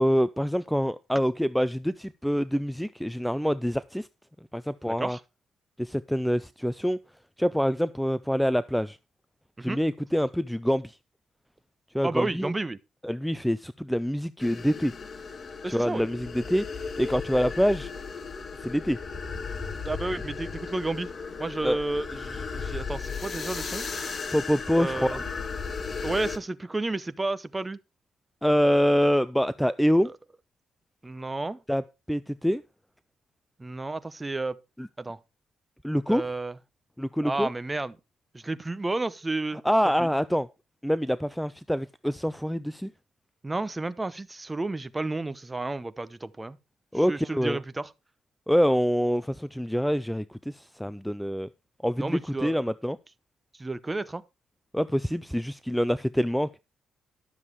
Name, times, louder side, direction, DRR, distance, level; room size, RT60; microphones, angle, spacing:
voice 1, 0.0-4.1 4.5-5.2 5.8-7.0 7.4-9.0 9.6-11.0 11.9-12.5 13.0-14.9 15.7-17.9 18.6-19.0 21.6-21.8 24.3-25.2 28.4-30.1 31.7-31.8 32.1-32.6 34.8-34.9 35.8-36.2 37.0-37.5 39.6-40.5 40.8-42.9 46.9-47.6 48.5-51.5 51.8-53.0 54.7-56.6, equal, ahead, 0.4 m, -26 dB
voice 2, 4.8-5.2 9.6-9.8 12.0-12.8 15.6-16.1 19.8-21.1 21.4-23.9 24.8-25.2 26.0-27.8 30.0-30.1 31.0-31.6 33.6-34.6 35.0-35.2 36.1-36.5 37.2-37.9 38.3-39.6 40.0-40.1 43.4-46.6 47.1-47.9 52.0-52.6 53.6-54.2, right 2 dB, 20° right, 0.9 m, -31 dB
sound 1, 14.4-26.4, left 5 dB, 40° left, 1.5 m, -36 dB
12.0 x 7.3 x 4.7 m
cardioid pair, 90°, 0 cm